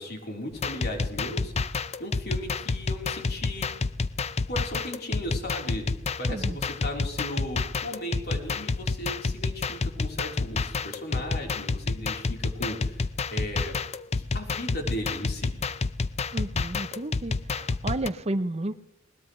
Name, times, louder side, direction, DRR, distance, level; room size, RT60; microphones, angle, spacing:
voice 1, 0.0-1.7 2.0-3.7 4.5-5.9 6.2-13.8 14.2-15.5, equal, 55° left, 1 dB, 3.9 m, -36 dB
sound 1, 0.5-18.1, left 4 dB, 30° left, 0.5 m, -29 dB
voice 2, 6.3-6.6 16.3-18.8, right 2 dB, 30° right, 12 dB, 0.7 m, -32 dB
21.0 x 20.0 x 3.2 m, 0.79 s
head